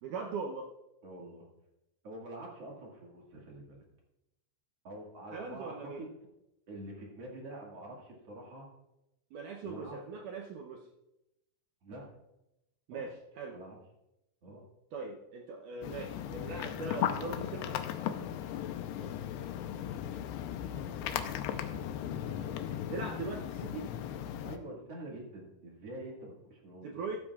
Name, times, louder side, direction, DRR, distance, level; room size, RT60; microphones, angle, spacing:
voice 1, 0.0-0.7 5.3-6.0 9.3-10.9 12.9-13.6 14.9-17.8 20.7-23.9 26.8-27.2, right 4 dB, 85° right, 1 dB, 1.8 m, -41 dB
voice 2, 1.0-1.5 2.0-3.8 4.8-6.1 6.7-8.7 9.6-10.0 11.8-12.1 12.9-13.0 13.5-13.8 14.4-14.6 18.9-19.1 24.4-27.2, right 1 dB, 45° right, -2 dB, 2.5 m, -46 dB
sound 1, 15.8-24.6, left 10 dB, 85° left, 2.7 m, -37 dB
15.0 x 13.0 x 2.4 m, 0.91 s
omnidirectional pair, 4.7 m